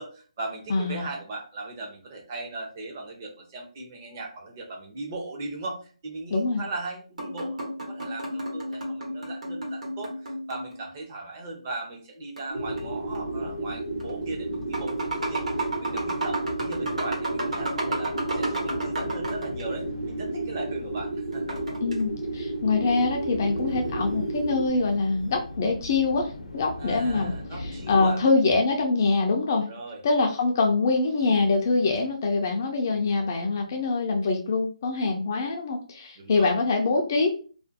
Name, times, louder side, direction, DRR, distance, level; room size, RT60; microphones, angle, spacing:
voice 1, 0.0-21.6 26.8-28.2 29.7-30.0 36.2-36.5, right 2 dB, 25° right, 1 dB, 0.6 m, -38 dB
voice 2, 0.7-1.1 6.3-6.6 21.8-29.7 30.0-37.3, left 3 dB, 30° left, 3 dB, 0.3 m, -24 dB
sound 1, 7.2-10.9 12.4-13.2 14.0-14.1 14.5-19.6 21.3-22.0, right 1 dB, 75° right, 1.2 m, -33 dB
sound 2, 12.5-28.1, left 2 dB, 80° left, 0.6 m, -39 dB
sound 3, 12.5-24.7, right 3 dB, 55° right, 0.8 m, -32 dB
2.5 x 2.2 x 2.5 m, 0.39 s
hypercardioid pair, 170°, 4 cm